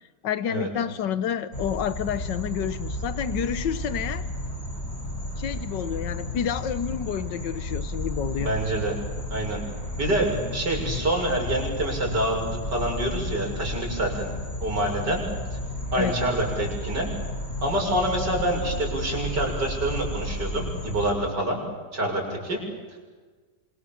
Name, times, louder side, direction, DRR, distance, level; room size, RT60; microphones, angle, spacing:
voice 1, 0.2-4.2 5.4-8.5 15.9-16.2, left 9 dB, 90° left, 14 dB, 1.7 m, -29 dB
sound 1, 1.5-21.1, left 1 dB, 35° left, 4.7 m, -33 dB
voice 2, 8.4-9.0 9.3-9.6 10.0-14.3 14.6-15.2 15.9-17.1 17.6-21.6 21.9-22.6, right 1 dB, 70° right, 0 dB, 7.3 m, -26 dB
27.0 x 27.0 x 7.3 m, 1.4 s
omnidirectional pair, 1.9 m